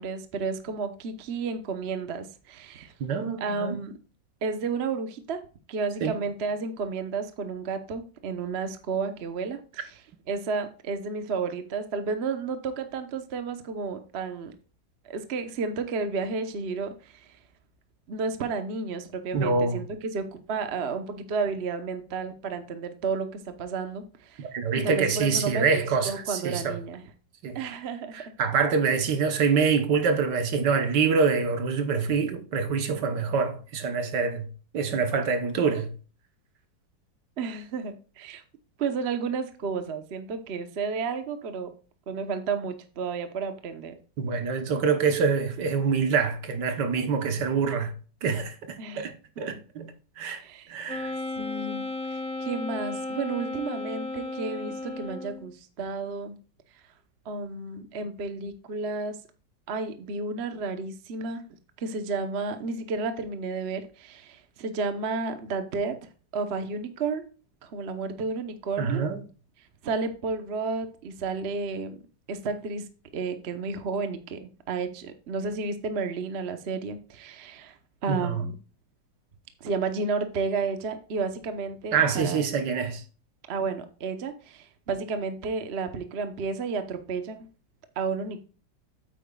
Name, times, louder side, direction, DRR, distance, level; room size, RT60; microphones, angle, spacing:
voice 1, 0.0-2.9 3.4-4.0 4.4-5.4 5.7-10.0 10.3-14.5 15.0-17.4 18.1-19.8 20.1-24.5 24.8-27.1 27.5-28.2 37.4-38.4 38.8-41.7 42.1-44.0 48.8-49.1 49.5-49.6 50.4-50.7 51.4-56.4 57.2-59.2 59.7-61.4 61.8-67.3 67.6-69.0 69.8-72.0 72.3-72.9 73.1-74.4 74.7-78.5 79.6-82.4 83.5-87.5 88.0-88.4, right 4 dB, 45° right, 0.9 m, -32 dB
voice 2, 3.0-3.8 6.0-6.2 19.3-19.8 24.4-26.8 27.4-27.6 28.1-35.9 44.2-47.9 48.2-50.4 50.7-51.1 68.8-69.2 78.1-78.4 81.9-83.0, right 5 dB, 65° right, 1.6 m, -26 dB
Wind instrument woodwind instrument, 50.9-55.5, left 2 dB, 5° left, 0.6 m, -34 dB
9.1 x 8.2 x 2.3 m
omnidirectional pair, 2.0 m